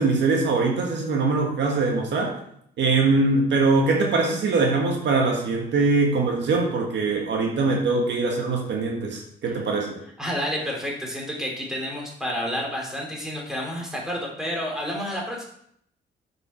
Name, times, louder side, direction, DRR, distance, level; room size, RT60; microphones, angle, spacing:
voice 1, 0.0-2.4 2.8-10.0, right 3 dB, 65° right, 1 dB, 1.6 m, -22 dB
voice 2, 10.2-15.4, equal, 5° right, -2 dB, 3.3 m, -30 dB
7.4 x 6.7 x 4.4 m, 0.70 s
cardioid pair, 90°, 20 cm